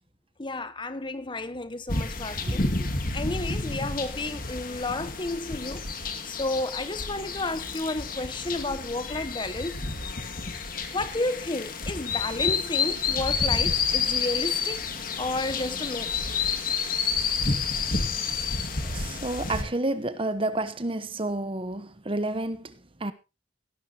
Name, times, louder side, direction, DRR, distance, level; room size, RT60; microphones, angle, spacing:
voice 1, 0.4-2.7 3.1-9.8 10.9-14.8 15.2-16.2, left 2 dB, 25° left, 1.0 m, -32 dB
sound 1, 1.9-19.6, left 5 dB, 50° left, 2.2 m, -29 dB
voice 2, 2.4-2.7 18.7-23.1, right 2 dB, 30° right, 1.1 m, -30 dB
17.0 x 12.5 x 2.9 m
head